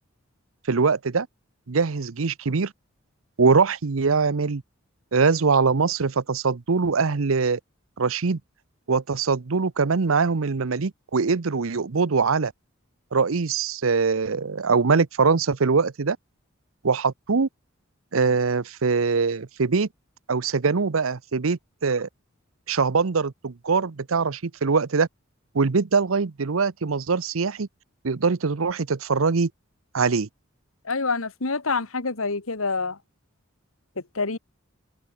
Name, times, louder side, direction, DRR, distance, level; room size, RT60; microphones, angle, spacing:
voice 1, 0.7-1.3 1.7-2.7 3.4-4.6 5.1-7.6 8.0-8.4 8.9-12.5 13.1-16.2 16.8-17.5 18.1-19.9 20.3-22.1 22.7-25.1 25.5-27.7 28.0-29.5 29.9-30.3, right 4 dB, 80° right, 0.8 m, -22 dB
voice 2, 30.8-33.0 34.0-34.4, left 4 dB, 90° left, 1.8 m, -27 dB
open air
head